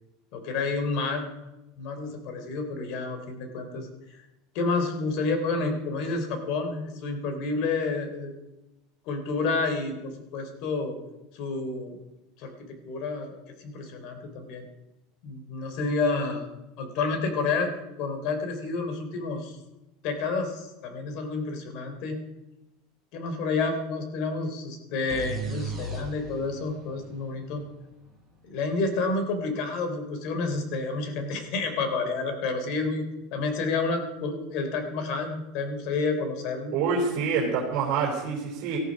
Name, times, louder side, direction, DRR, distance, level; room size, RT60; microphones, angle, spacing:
voice 1, 0.3-1.3 1.8-4.2 4.6-8.3 9.1-11.0 11.3-12.0 12.4-12.5 12.8-14.6 15.2-16.5 16.8-17.7 18.0-19.6 20.0-22.2 23.1-27.6 28.4-33.0 33.3-36.7, left 3 dB, 55° left, 7 dB, 3.3 m, -29 dB
sound 1, 25.1-28.8, right 2 dB, 5° right, 4.7 m, -37 dB
voice 2, 36.7-38.8, right 5 dB, 50° right, -1 dB, 4.0 m, -26 dB
18.5 x 13.5 x 5.2 m, 0.98 s
supercardioid pair, 145°, 0 cm